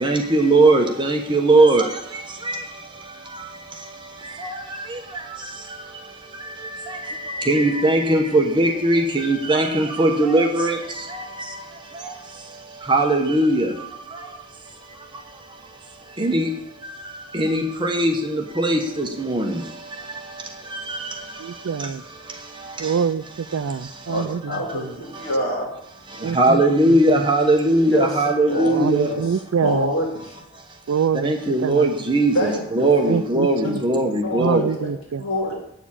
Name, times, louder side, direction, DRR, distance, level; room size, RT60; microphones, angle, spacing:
voice 1, 0.0-1.8 7.5-10.8 12.9-13.7 16.2-16.4 17.4-18.1 18.6-19.5 26.4-29.1 31.2-32.5 32.8-34.6, right 2 dB, 20° right, 3 dB, 1.0 m, -18 dB
voice 2, 21.4-22.0 22.8-24.9 26.2-27.2 28.8-29.9 30.9-31.9 33.0-34.1 34.4-35.3, right 6 dB, 75° right, 14 dB, 0.4 m, -26 dB
voice 3, 24.1-25.7 27.9-28.1 28.5-29.2 29.6-30.1 32.3-33.2 33.7-33.8 34.2-34.9 35.2-35.6, left 1 dB, 65° left, -2 dB, 2.4 m, -26 dB
8.4 x 7.1 x 8.7 m, 0.82 s
head